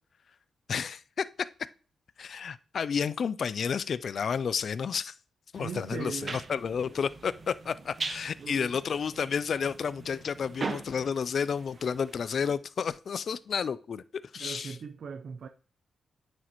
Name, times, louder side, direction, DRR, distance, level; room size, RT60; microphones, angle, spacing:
voice 1, 0.7-1.3 2.2-5.1 5.5-14.0 14.3-14.8, left 6 dB, 60° left, 0.4 m, -31 dB
sound 1, 5.5-12.5, right 4 dB, 45° right, 1.2 m, -41 dB
voice 2, 5.6-6.4 8.4-8.8 14.4-15.5, right 6 dB, 65° right, 0.6 m, -39 dB
9.3 x 6.3 x 3.0 m
cardioid pair, 80°, 0 cm